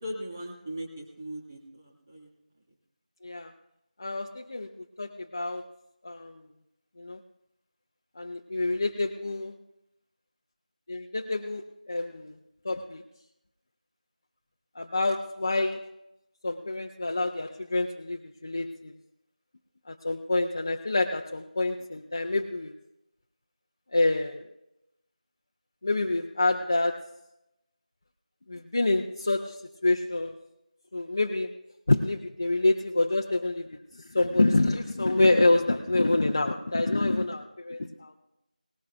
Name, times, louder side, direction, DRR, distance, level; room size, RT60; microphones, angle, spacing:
voice 1, 0.0-2.3, equal, 20° right, 0 dB, 1.8 m, -39 dB
voice 2, 4.0-4.7 5.0-5.7 6.0-6.4 7.0-7.2 8.2-9.6 10.9-12.4 12.6-13.0 14.8-15.9 16.4-18.9 19.9-22.8 23.9-24.5 25.8-27.2 28.5-30.3 30.9-31.5 31.9-38.1, left 2 dB, 25° left, 3 dB, 0.5 m, -27 dB
19.0 x 18.5 x 2.3 m, 0.88 s
figure-of-eight pair, 175°, 4 cm